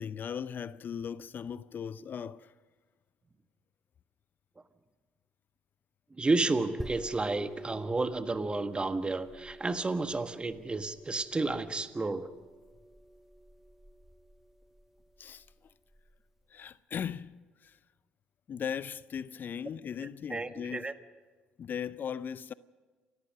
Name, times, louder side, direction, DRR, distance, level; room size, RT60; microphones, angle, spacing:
voice 1, 0.0-2.5 15.2-15.5 16.5-17.8 18.5-20.9 21.6-22.5, left 7 dB, 45° left, 0.5 m, -38 dB
voice 2, 6.2-12.3 20.3-20.9, right 3 dB, 25° right, 1.5 m, -31 dB
sound 1, 6.8-16.1, right 1 dB, 5° right, 0.9 m, -48 dB
28.5 x 14.5 x 6.5 m
hypercardioid pair, 55°, 4 cm